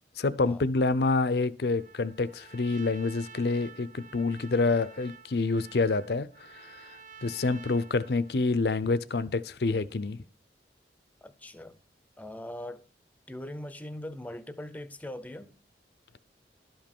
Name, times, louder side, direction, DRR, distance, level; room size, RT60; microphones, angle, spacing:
voice 1, 0.2-10.2, left 3 dB, 60° left, 0.5 m, -27 dB
Trumpet, 1.7-8.5, right 6 dB, 45° right, 0.8 m, -51 dB
voice 2, 11.2-11.8 12.2-12.8 13.3-15.6, left 1 dB, 10° left, 0.6 m, -41 dB
12.0 x 5.2 x 5.4 m
head